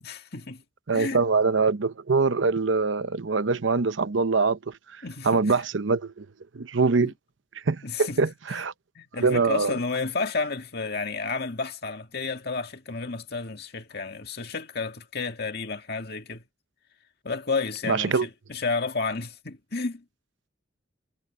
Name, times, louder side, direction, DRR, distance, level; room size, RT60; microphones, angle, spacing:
voice 1, 0.0-0.6 0.9-1.2 5.0-5.7 7.0-7.1 7.8-8.6 9.0-16.4 17.2-20.0, left 4 dB, 55° left, 2.0 m, -31 dB
voice 2, 0.9-4.7 5.2-6.3 6.5-7.1 7.7-8.7 9.2-9.7 17.9-18.3, right 4 dB, 80° right, 0.8 m, -23 dB
head